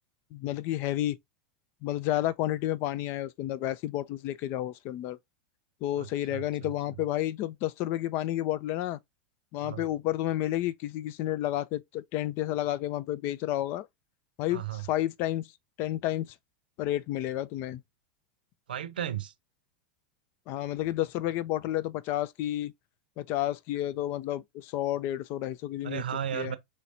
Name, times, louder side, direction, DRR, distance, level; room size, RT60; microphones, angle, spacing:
voice 1, 0.3-1.2 1.8-5.2 5.8-9.0 9.5-13.9 14.4-15.5 15.8-16.3 16.8-17.8 20.5-22.7 23.2-26.0 26.3-26.5, left 14 dB, 45° left, 0.4 m, -31 dB
voice 2, 6.0-6.7 9.6-9.8 14.5-14.9 18.7-19.3 25.8-26.6, right 10 dB, 75° right, 0.7 m, -35 dB
5.6 x 3.1 x 2.6 m
figure-of-eight pair, 90°, 5 cm